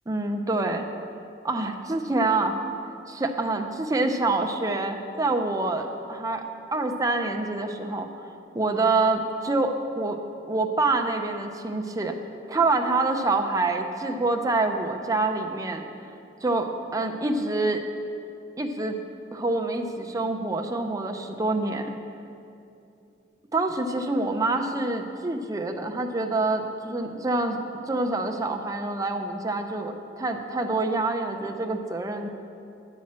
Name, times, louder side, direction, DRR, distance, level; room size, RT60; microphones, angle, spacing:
voice 1, 0.1-0.9 1.4-2.6 3.1-6.4 6.7-8.1 8.5-10.2 10.5-12.2 12.5-15.8 16.4-17.8 18.6-19.0 19.3-21.9 23.5-27.6 27.8-32.3, right 2 dB, 20° right, 3 dB, 0.5 m, -26 dB
11.0 x 4.3 x 7.4 m, 2.7 s
head